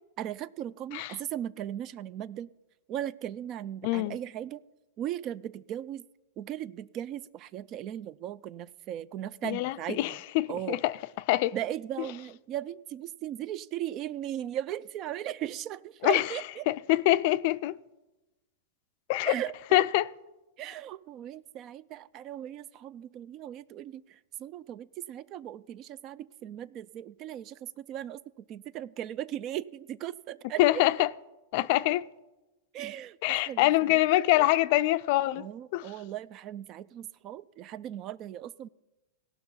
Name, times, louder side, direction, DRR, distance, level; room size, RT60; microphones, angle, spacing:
voice 1, 0.2-2.5 2.9-4.6 5.0-6.1 6.4-10.2 10.5-10.8 11.5-16.7 19.2-19.5 20.6-30.8 32.7-34.5 35.3-38.7, right 11 dB, 40° right, 0.3 m, -38 dB
voice 2, 3.8-4.2 9.4-11.0 11.3-11.5 16.0-16.2 16.7-17.7 19.1-19.3 19.7-20.1 30.6-31.1 31.5-32.1 33.2-35.5 35.7-35.9, left 17 dB, 55° left, 0.4 m, -25 dB
17.0 x 5.9 x 5.6 m
hypercardioid pair, 130°, 0 cm